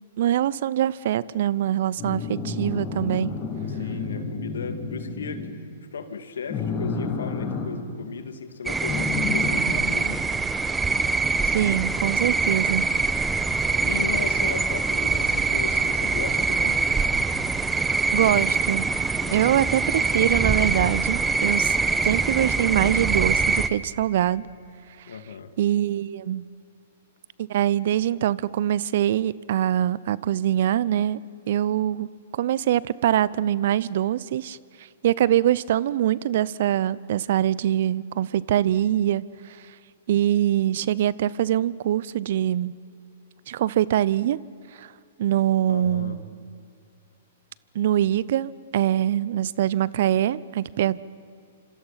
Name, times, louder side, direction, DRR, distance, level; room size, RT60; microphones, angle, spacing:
voice 1, 0.2-3.3 11.4-12.9 18.1-18.9 19.3-21.8 22.0-24.5 25.6-26.5 27.5-31.2 31.5-34.6 35.0-39.6 40.1-42.7 43.5-44.4 44.8-44.9 45.2-46.2 47.7-51.0, right 11 dB, 60° right, 21 dB, 0.7 m, -23 dB
sound 1, 2.0-5.6 6.5-7.7 8.8-9.6, left 4 dB, 30° left, 5.8 m, -30 dB
voice 2, 3.7-5.5 5.9-10.2 13.5-16.8 19.2-19.6 25.1-25.5 45.7-46.2, left 6 dB, 75° left, 9 dB, 2.1 m, -36 dB
sound 2, 8.7-23.7, right 4 dB, 10° right, 1.1 m, -24 dB
26.5 x 26.5 x 5.9 m, 2.4 s
hypercardioid pair, 120°, 0 cm